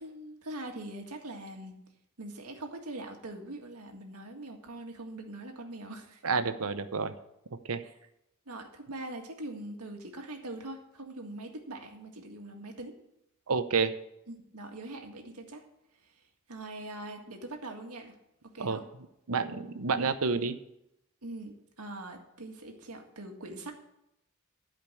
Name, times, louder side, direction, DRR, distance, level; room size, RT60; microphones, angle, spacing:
voice 1, 0.0-1.8 2.2-6.2 7.8-7.9 8.5-13.0 14.3-15.7 16.5-18.2 18.5-18.9 21.2-23.7, right 2 dB, 90° right, 3 dB, 1.8 m, -42 dB
voice 2, 6.2-7.1 7.7-7.8 13.5-13.9 18.6-18.8 19.3-20.6, right 4 dB, 75° right, 11 dB, 0.8 m, -29 dB
12.0 x 5.2 x 8.3 m, 0.82 s
head